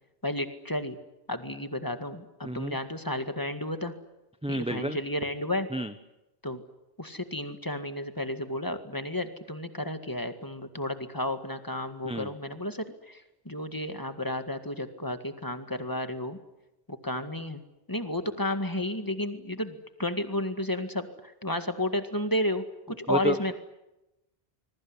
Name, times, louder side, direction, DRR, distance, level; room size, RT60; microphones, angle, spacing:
voice 1, 0.2-1.0 1.3-3.9 4.5-5.7 6.4-6.6 7.0-16.4 16.9-17.6 17.9-23.5, left 1 dB, 20° left, 8 dB, 2.0 m, -32 dB
voice 2, 2.4-2.8 4.4-5.0 5.7-5.9 12.0-12.3 23.1-23.5, right 1 dB, 5° right, 9 dB, 1.0 m, -30 dB
26.0 x 22.0 x 9.9 m, 0.96 s
omnidirectional pair, 1.0 m